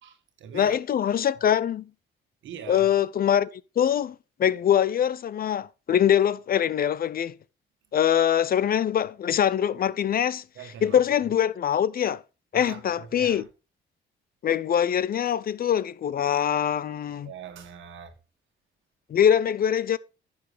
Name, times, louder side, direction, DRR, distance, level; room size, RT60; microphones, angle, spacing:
voice 1, 0.0-0.8 2.4-2.9 10.6-11.0 12.5-13.5 17.2-18.2, right 8 dB, 75° right, 1.7 m, -42 dB
voice 2, 0.5-1.9 2.7-7.4 7.9-10.4 10.8-12.2 12.5-13.4 14.4-17.3 19.1-20.0, left 9 dB, 50° left, 0.5 m, -23 dB
11.5 x 7.1 x 3.3 m
cardioid pair, 90°, 20 cm